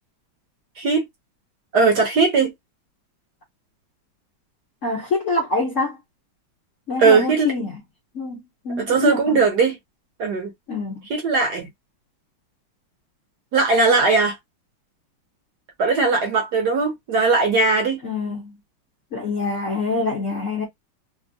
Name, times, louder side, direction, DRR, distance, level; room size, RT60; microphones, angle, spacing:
voice 1, 1.7-2.5 7.0-7.5 8.8-9.8 10.2-10.5 11.1-11.7 13.5-14.4 15.8-18.0, right 4 dB, 60° right, 1.2 m, -19 dB
voice 2, 4.8-6.0 6.9-7.8 8.1-9.4 10.7-11.0 18.0-18.6 19.1-20.7, left 3 dB, 50° left, 1.0 m, -25 dB
3.4 x 2.1 x 2.6 m
omnidirectional pair, 2.3 m